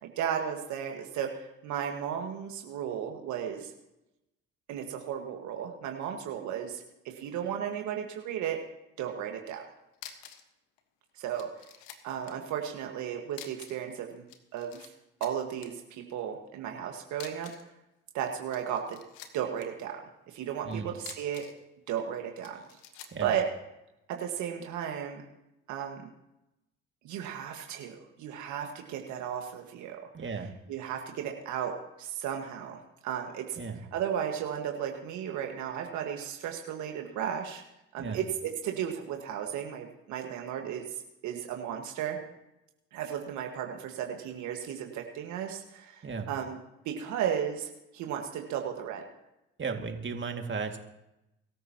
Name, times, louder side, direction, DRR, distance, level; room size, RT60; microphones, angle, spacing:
voice 1, 0.0-3.7 4.7-8.6 9.0-9.6 11.2-11.5 12.0-14.2 14.5-14.9 15.2-17.5 18.1-19.0 19.3-20.0 20.3-21.5 21.9-22.6 23.2-23.4 24.1-25.2 25.7-26.1 27.0-30.0 30.7-33.6 33.9-37.6 37.9-42.2 42.9-46.6 46.9-49.0, right 9 dB, 70° right, 3 dB, 1.7 m, -34 dB
sound 1, 9.9-10.5 10.8-10.9 11.4-12.4 13.3-13.9 14.2-14.9 15.2-15.7 17.1-17.7 18.4-19.7 20.9-21.6 22.4-23.2, left 10 dB, 80° left, 1.5 m, -47 dB
voice 2, 30.1-30.5 33.6-33.8 38.0-38.2 46.0-46.3 49.6-50.8, right 5 dB, 40° right, 4 dB, 2.2 m, -35 dB
23.5 x 14.0 x 3.0 m, 0.90 s
hypercardioid pair, 55°, 30 cm